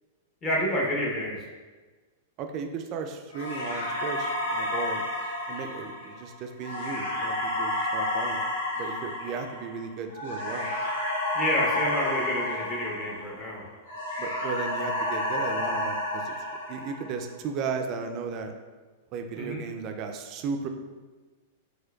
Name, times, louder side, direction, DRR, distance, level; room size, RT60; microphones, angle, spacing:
voice 1, 0.4-1.4 11.3-13.6 19.4-19.6, equal, 25° left, -3 dB, 0.7 m, -28 dB
voice 2, 2.4-5.0 5.5-8.4 8.8-10.7 14.2-16.4 16.7-18.5 19.1-20.7, right 5 dB, 35° right, 5 dB, 0.3 m, -35 dB
sound 1, 3.3-13.5 13.8-17.3, left 1 dB, 85° left, 0.9 m, -31 dB
4.3 x 2.2 x 2.2 m, 1.3 s
hypercardioid pair, 140°, 0 cm